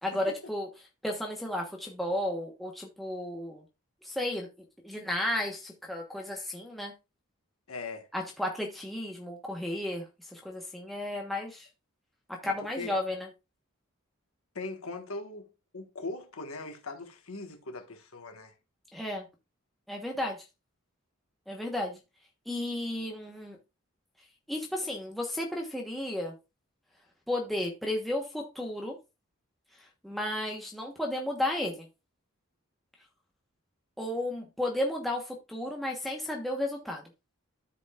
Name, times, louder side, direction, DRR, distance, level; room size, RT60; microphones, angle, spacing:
voice 1, 0.0-0.7 1.0-3.6 4.0-4.5 4.8-6.9 8.1-10.0 10.3-11.7 12.4-13.3 18.9-19.3 19.9-20.4 21.5-22.0 22.5-23.6 24.5-26.3 27.3-29.0 30.0-31.9 34.0-37.0, left 1 dB, ahead, 1.1 m, -33 dB
voice 2, 7.7-8.1 12.5-13.0 14.5-15.5 15.7-18.5, left 3 dB, 85° left, 1.5 m, -40 dB
14.0 x 5.0 x 2.4 m
head